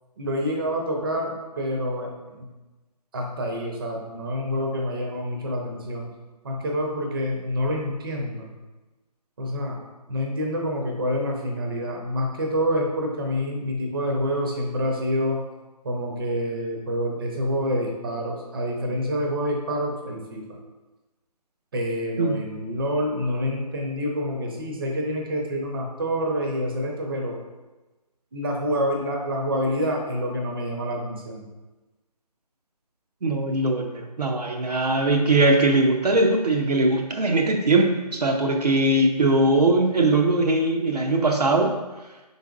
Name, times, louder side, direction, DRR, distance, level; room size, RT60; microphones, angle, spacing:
voice 1, 0.2-2.5 3.1-6.1 6.4-8.5 9.4-9.8 10.1-15.4 15.8-20.4 21.7-27.4 28.3-31.5, equal, 35° right, 1 dB, 0.6 m, -27 dB
voice 2, 33.2-41.8, right 2 dB, 70° right, 2 dB, 0.6 m, -21 dB
5.5 x 4.0 x 2.4 m, 1.2 s
figure-of-eight pair, 150°, 21 cm